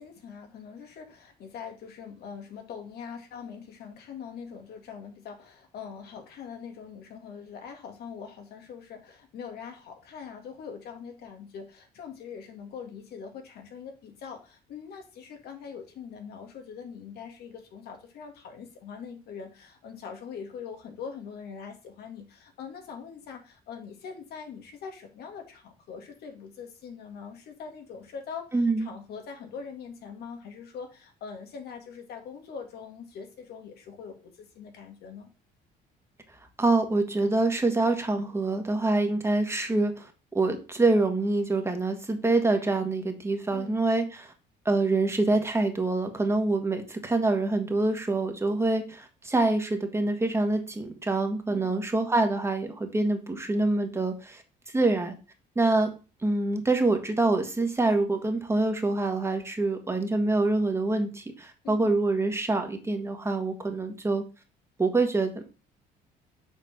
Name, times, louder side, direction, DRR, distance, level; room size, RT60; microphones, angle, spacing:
voice 1, 0.0-35.3 43.5-43.8 51.5-51.7 61.6-61.9, left 6 dB, 70° left, 4 dB, 2.0 m, -42 dB
voice 2, 28.5-28.9 36.6-44.3 44.6-54.4 54.7-55.1 55.5-55.9 56.2-64.2 64.8-65.5, right 2 dB, 15° right, 5 dB, 1.6 m, -26 dB
6.7 x 4.7 x 5.8 m, 0.33 s
cardioid pair, 110°, 17 cm